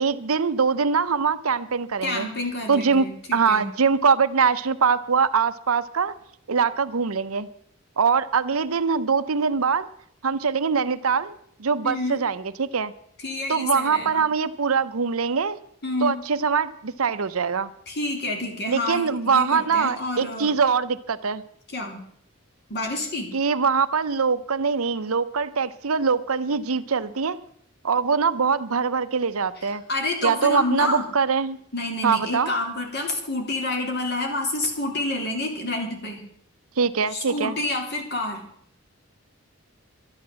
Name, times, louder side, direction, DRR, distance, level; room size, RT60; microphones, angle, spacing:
voice 1, 0.0-2.3 2.7-3.1 3.3-6.1 6.5-7.5 8.0-9.9 10.2-11.3 11.6-12.9 13.5-15.6 16.0-17.7 18.7-21.4 23.3-27.4 27.8-29.8 30.2-31.6 32.0-32.5 36.8-37.6, right 5 dB, 80° right, 13 dB, 0.8 m, -23 dB
voice 2, 2.0-3.7 11.8-12.2 13.2-14.2 15.8-16.2 17.9-20.5 21.7-22.0 22.7-23.3 29.9-31.0 31.7-36.2 37.1-38.4, left 2 dB, 50° left, 2 dB, 3.3 m, -28 dB
12.5 x 10.5 x 7.5 m, 0.67 s
head